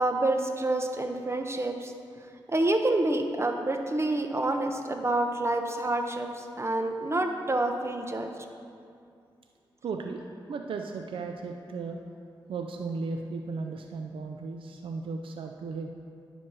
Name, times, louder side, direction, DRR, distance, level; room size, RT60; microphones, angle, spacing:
voice 1, 0.0-1.9 2.5-8.3, right 2 dB, 30° right, 4 dB, 1.1 m, -28 dB
voice 2, 9.8-10.2 10.5-12.0 12.5-15.9, right 4 dB, 75° right, 4 dB, 0.5 m, -35 dB
10.0 x 4.4 x 6.2 m, 2.4 s
supercardioid pair, 45°, 9 cm